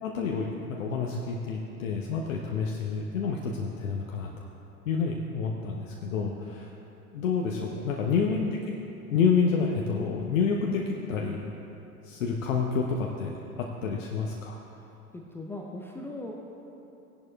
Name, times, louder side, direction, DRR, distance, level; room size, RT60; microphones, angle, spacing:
voice 1, 0.0-4.4 4.9-6.7 7.1-8.8 9.1-11.5 12.0-14.6, left 5 dB, 60° left, 0 dB, 1.0 m, -29 dB
voice 2, 15.1-16.3, left 2 dB, 5° left, -1 dB, 0.5 m, -40 dB
17.0 x 11.0 x 2.4 m, 3.0 s
figure-of-eight pair, 85°, 45 cm